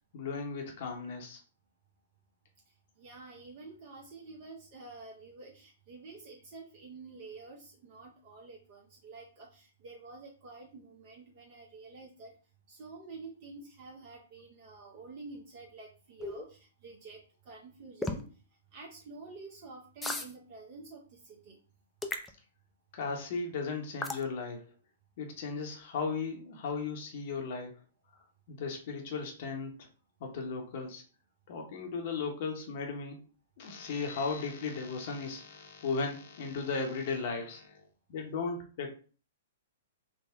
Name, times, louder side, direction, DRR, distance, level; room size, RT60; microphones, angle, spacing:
voice 1, 0.1-1.4 22.9-24.6 25.2-27.7 28.5-29.9 30.2-31.0 31.5-33.2 33.6-37.8 38.1-38.9, left 4 dB, 50° left, 2 dB, 0.7 m, -36 dB
voice 2, 3.0-12.3 12.7-18.3 18.7-21.6, right 3 dB, 45° right, -1 dB, 0.7 m, -49 dB
sound 1, 16.2-16.4 18.0-18.2 20.0-20.3 22.0-22.3 24.0-24.2, left 2 dB, 5° left, 0.4 m, -34 dB
3.5 x 2.1 x 3.4 m, 0.39 s
figure-of-eight pair, 115°, 0 cm